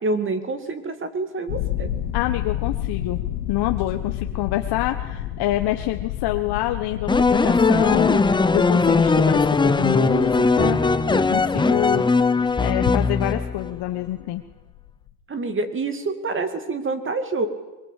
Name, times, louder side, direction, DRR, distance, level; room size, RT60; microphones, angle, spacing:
voice 1, 0.0-1.9 15.3-17.5, right 3 dB, 25° right, 9 dB, 2.6 m, -27 dB
sound 1, 1.5-15.1, left 11 dB, 80° left, 2.8 m, -31 dB
voice 2, 2.1-3.2 3.5-12.0 12.6-14.4, left 15 dB, 50° left, 5 dB, 1.3 m, -26 dB
sound 2, 7.1-13.7, left 4 dB, 10° left, 0.8 m, -19 dB
22.5 x 22.5 x 8.3 m, 1.2 s
supercardioid pair, 125°, 49 cm